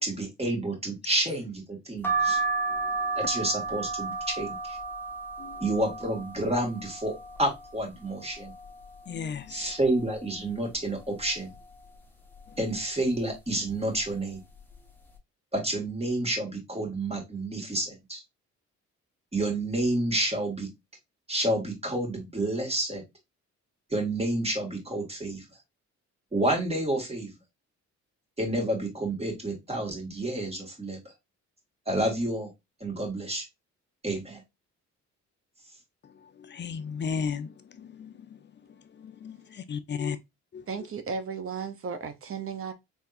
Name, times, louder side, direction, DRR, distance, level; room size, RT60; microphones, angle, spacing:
voice 1, 0.0-2.4 3.2-4.8 5.6-7.1 7.4-8.5 9.5-11.5 12.6-14.4 15.5-18.2 19.3-20.7 21.3-23.0 23.9-25.4 26.3-27.3 28.4-31.0 31.9-32.5 32.8-33.4 34.0-34.4, right 1 dB, 20° right, 2.1 m, -29 dB
sound 1, 2.0-7.7 8.2-8.9 9.3-9.4 9.6-10.7 11.2-11.6 12.3-12.7 13.5-13.7 14.0-14.2, right 4 dB, 5° left, 1.1 m, -32 dB
voice 2, 9.1-9.7 36.4-38.4 38.9-40.2 40.5-40.6, left 6 dB, 35° left, 0.7 m, -35 dB
voice 3, 40.7-42.7, right 5 dB, 45° right, 0.8 m, -34 dB
4.6 x 3.4 x 2.6 m
cardioid pair, 90°, 30 cm